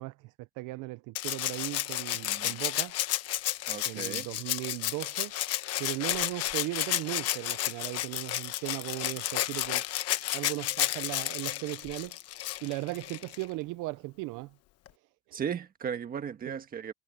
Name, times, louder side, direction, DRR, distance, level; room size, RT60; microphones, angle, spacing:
voice 1, 0.0-3.0 3.8-5.3 5.8-9.8 10.3-12.2 12.6-14.5 15.3-15.4 16.4-16.6, right 21 dB, 60° right, 0.6 m, -37 dB
Rattle (instrument), 1.1-13.5 14.9-15.0, left 14 dB, 45° left, 1.1 m, -32 dB
voice 2, 3.7-4.3 15.3-16.9, right 8 dB, 25° right, 1.5 m, -36 dB
cardioid pair, 170°, 35 cm